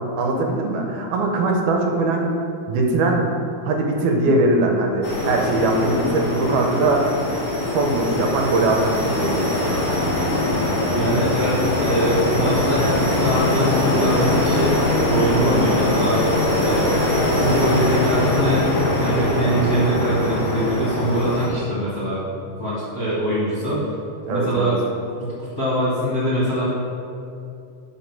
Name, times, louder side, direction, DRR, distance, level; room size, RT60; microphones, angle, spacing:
voice 1, 0.2-2.3 2.7-3.3 3.6-7.0 7.4-9.5 24.3-24.7, right 2 dB, 80° right, 1 dB, 2.3 m, -21 dB
sound 1, 5.0-21.5, left 1 dB, 70° left, 0.7 m, -22 dB
voice 2, 10.9-16.2 16.6-22.2 22.6-23.8 24.3-24.8 25.2-26.6, equal, 40° left, -9 dB, 1.4 m, -23 dB
9.5 x 3.8 x 5.9 m, 2.6 s
omnidirectional pair, 3.6 m